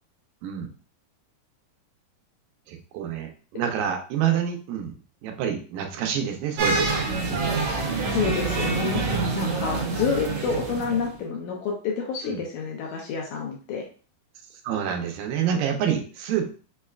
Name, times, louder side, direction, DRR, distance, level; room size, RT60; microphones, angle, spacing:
voice 1, 2.7-4.9 5.2-7.0 12.2-12.4 14.6-16.5, right 9 dB, 90° right, 3 dB, 2.3 m, -27 dB
sound 1, 6.6-11.1, right 3 dB, 70° right, 1.5 m, -26 dB
voice 2, 8.1-9.0 9.4-13.9, left 5 dB, 80° left, 0 dB, 1.8 m, -28 dB
5.6 x 2.2 x 2.3 m, 0.38 s
omnidirectional pair, 3.8 m